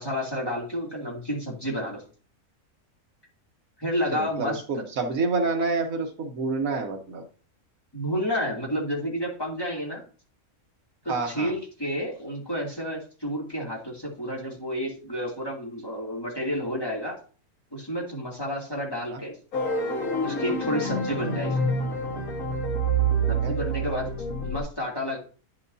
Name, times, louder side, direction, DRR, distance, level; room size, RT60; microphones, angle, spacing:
voice 1, 0.0-2.0 3.8-4.6 7.9-10.0 11.0-17.2 17.7-19.4 20.2-21.6 23.3-24.1 24.4-25.2, equal, 15° left, -3 dB, 2.5 m, -30 dB
voice 2, 4.1-7.2 11.1-11.5 19.1-19.2 23.2-23.5, right 3 dB, 70° right, 4 dB, 1.4 m, -28 dB
sound 1, 19.5-24.6, right 2 dB, 65° left, 2.0 m, -27 dB
9.9 x 6.5 x 2.7 m, 0.37 s
omnidirectional pair, 1.6 m